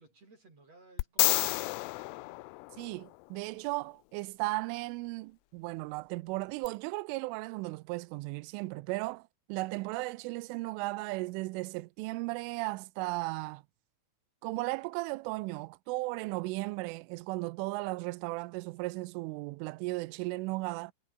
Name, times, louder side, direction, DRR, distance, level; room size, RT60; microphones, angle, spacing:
voice 1, 0.0-2.4, right 2 dB, 35° right, 6.8 m, -60 dB
sound 1, 1.0-3.2 6.6-6.7, left 25 dB, 90° left, 3.1 m, -30 dB
voice 2, 2.8-13.6 14.4-20.9, right 23 dB, 85° right, 3.2 m, -36 dB
omnidirectional pair, 5.6 m